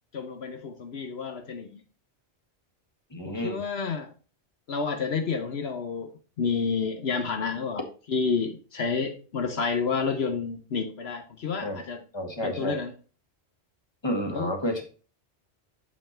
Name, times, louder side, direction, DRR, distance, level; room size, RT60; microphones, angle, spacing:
voice 1, 0.1-1.8 3.2-4.1 4.7-6.1 6.4-7.8 8.1-12.0 12.4-12.9 14.3-14.5, left 5 dB, 70° left, 6 dB, 1.1 m, -29 dB
voice 2, 3.1-3.6 11.6-11.8 12.1-12.8 14.0-14.8, equal, 25° left, 4 dB, 1.6 m, -30 dB
7.3 x 5.6 x 4.3 m, 0.37 s
omnidirectional pair, 1.1 m